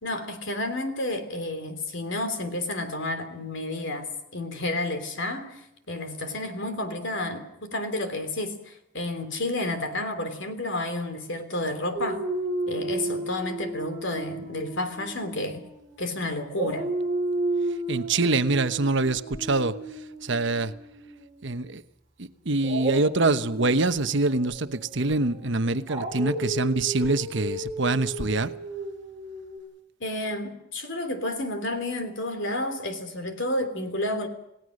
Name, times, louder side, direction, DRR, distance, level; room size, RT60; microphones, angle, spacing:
voice 1, 0.0-12.2 12.7-15.6 16.0-16.9 30.0-34.3, left 1 dB, 60° left, 8 dB, 3.3 m, -31 dB
Dog, 11.9-16.1 16.5-21.5 22.6-29.6, right 2 dB, 20° right, 5.7 m, -33 dB
voice 2, 17.9-19.8 20.2-20.7 21.4-21.8 22.2-28.5, right 3 dB, 60° right, 11 dB, 1.1 m, -25 dB
29.0 x 18.0 x 6.5 m, 0.82 s
head